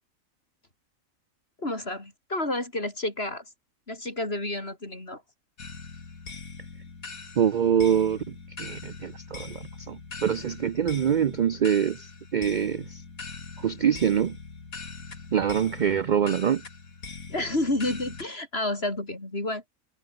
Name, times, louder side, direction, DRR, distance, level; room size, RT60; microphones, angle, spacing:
voice 1, 1.6-3.4 3.9-5.2 17.3-19.7, left 2 dB, 45° left, 5.4 m, -30 dB
sound 1, 5.6-18.3, left 4 dB, 80° left, 3.0 m, -42 dB
voice 2, 7.4-13.0 13.6-14.4 15.3-16.6, right 8 dB, 75° right, 0.4 m, -25 dB
omnidirectional pair, 1.4 m